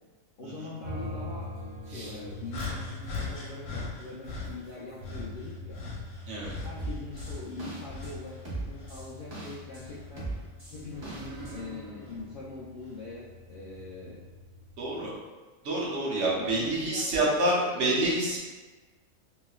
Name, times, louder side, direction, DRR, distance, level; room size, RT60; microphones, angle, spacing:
voice 1, 0.4-1.5 1.8-5.8 6.6-10.3 10.7-14.2 16.4-18.2, left 3 dB, 65° left, -8 dB, 0.5 m, -42 dB
sound 1, 0.8-15.0, left 1 dB, 85° right, 1.1 m, -44 dB
sound 2, 2.5-4.5 5.0-8.3 8.7-10.2 10.9-11.1 12.0-12.2, left 3 dB, 90° left, 1.1 m, -39 dB
sound 3, 6.8-8.1 8.4-9.8 10.2-11.5, right 2 dB, 35° right, 0.4 m, -39 dB
voice 2, 14.8-15.1 15.6-18.4, right 1 dB, 65° right, -4 dB, 1.0 m, -28 dB
3.1 x 2.7 x 2.3 m, 1.3 s
omnidirectional pair, 1.4 m